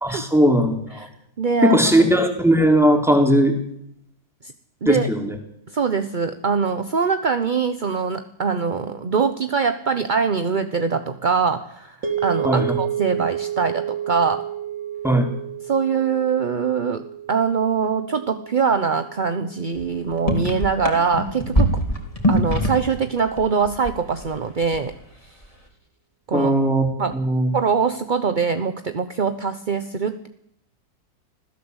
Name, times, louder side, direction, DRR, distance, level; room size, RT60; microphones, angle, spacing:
voice 1, 0.0-1.1 1.6-3.5 4.8-5.3 12.5-12.8 15.0-15.3 26.3-26.9 27.1-27.5, equal, ahead, 4 dB, 3.5 m, -18 dB
voice 2, 1.4-2.1 4.4-4.5 4.8-5.1 5.7-14.5 15.6-21.8 22.3-25.0 25.3-25.4 26.3-26.5 27.0-27.2 27.5-30.3, right 5 dB, 35° right, 9 dB, 0.8 m, -23 dB
sound 1, 12.0-20.3, right 10 dB, 75° right, 3.7 m, -31 dB
sound 2, 19.8-19.9 20.1-23.0 23.3-24.3 24.6-24.9, equal, 20° left, 3.7 m, -22 dB
25.5 x 16.5 x 8.1 m, 0.73 s
omnidirectional pair, 2.0 m